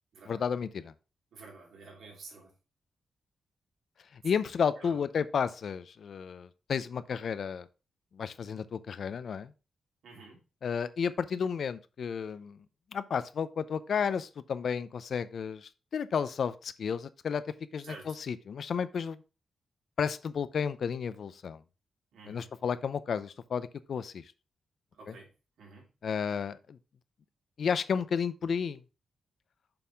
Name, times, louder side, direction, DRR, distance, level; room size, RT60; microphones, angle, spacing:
voice 1, 0.3-0.9 4.1-7.7 8.1-9.5 10.6-12.6 12.9-17.4 17.7-19.2 20.0-21.6 22.3-24.2 26.0-26.8 27.6-28.8, left 6 dB, 50° left, 0.5 m, -32 dB
voice 2, 1.3-2.5 4.2-4.4 4.8-5.0 10.0-10.4 17.8-18.2 22.1-22.5 24.9-25.3 25.6-25.9, right 3 dB, 80° right, 2.8 m, -50 dB
6.9 x 5.5 x 3.4 m
wide cardioid pair, 180°, 0 cm